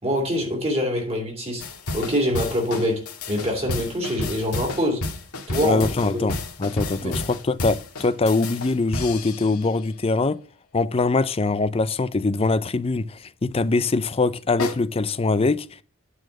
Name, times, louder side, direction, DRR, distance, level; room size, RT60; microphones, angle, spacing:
voice 1, 0.0-1.6 1.9-5.0 5.5-5.8 6.1-6.3 6.9-7.1, equal, 30° right, 2.8 m, -25 dB
sound 1, 1.6-9.8 14.6-14.7, left 2 dB, 90° left, 1.7 m, -31 dB
voice 2, 5.6-10.4 10.7-15.8, left 3 dB, 25° left, 0.5 m, -23 dB
9.1 x 4.3 x 7.1 m
head